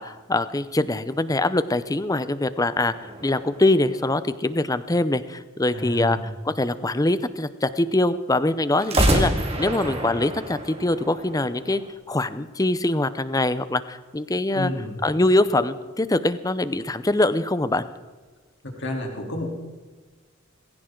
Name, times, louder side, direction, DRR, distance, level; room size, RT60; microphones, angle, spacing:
voice 1, 0.0-2.9 3.2-11.8 12.1-14.7 15.0-17.8, left 2 dB, 15° left, 14 dB, 0.6 m, -23 dB
sound 1, 2.9-4.7 8.8-11.9, right 1 dB, 30° right, 2.3 m, -27 dB
voice 2, 5.7-6.3 14.5-15.0 18.6-19.5, left 1 dB, 55° left, 0 dB, 3.4 m, -30 dB
19.5 x 17.0 x 3.9 m, 1.3 s
head